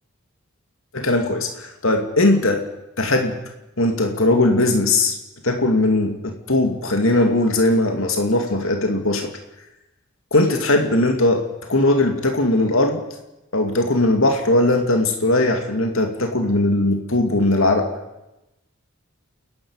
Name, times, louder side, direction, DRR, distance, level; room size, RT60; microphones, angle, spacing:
voice 1, 0.9-2.6 3.0-3.4 3.8-5.1 5.4-9.3 10.3-11.4 11.7-13.0 13.5-17.9, left 2 dB, 75° left, 4 dB, 2.5 m, -19 dB
29.0 x 11.5 x 9.8 m, 0.97 s
head